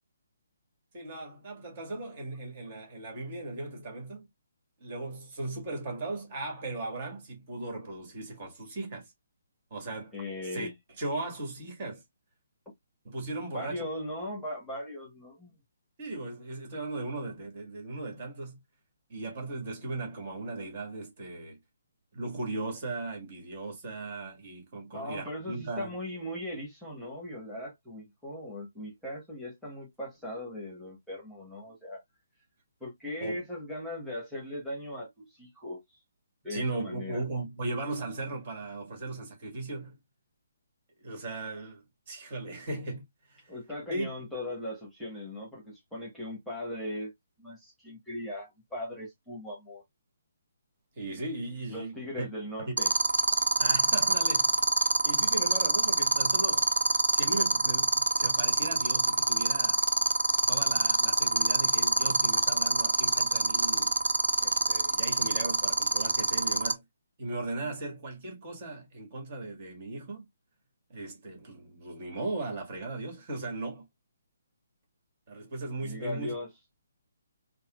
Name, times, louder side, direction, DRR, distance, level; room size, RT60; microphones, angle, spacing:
voice 1, 0.9-4.3 4.8-9.1 9.7-10.1 10.4-10.7 11.0-12.0 13.0-13.9 16.0-18.6 19.1-21.6 22.1-26.0 33.2-33.4 36.5-40.0 41.0-43.5 43.9-44.1 50.9-52.3 52.6-52.8 53.6-54.5 55.0-56.7 57.1-59.8 60.5-64.0 64.4-66.8 67.2-70.3 70.9-73.8 75.3-76.3, right 2 dB, 40° right, 1.8 m, -37 dB
voice 2, 10.1-10.7 13.5-15.6 24.9-32.0 32.8-35.8 36.4-37.2 43.5-47.1 47.4-49.8 51.7-52.9 75.8-76.5, left 1 dB, ahead, 1.4 m, -39 dB
sound 1, 52.8-66.7, right 3 dB, 80° right, 0.5 m, -24 dB
4.1 x 2.3 x 2.4 m
figure-of-eight pair, 145°, 0 cm